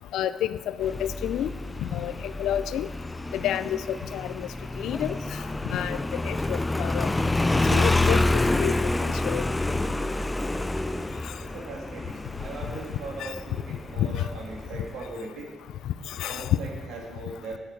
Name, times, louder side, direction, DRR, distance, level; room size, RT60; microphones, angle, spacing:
voice 1, 0.1-1.5 1.9-2.1 2.4-2.9 3.3-4.5 4.8-5.2 5.7-6.0 6.2-7.1 7.7-8.2 8.6-8.7 9.0-9.4 13.2-13.3 14.0-14.2 16.2-16.5, left 11 dB, 85° left, 14 dB, 0.4 m, -29 dB
Motorcycle, 0.8-15.1, left 2 dB, 15° left, 0.4 m, -28 dB
voice 2, 11.4-15.5 16.1-17.6, right 3 dB, 85° right, -1 dB, 2.5 m, -39 dB
10.5 x 8.5 x 4.6 m, 1.4 s
cardioid pair, 90°, 0 cm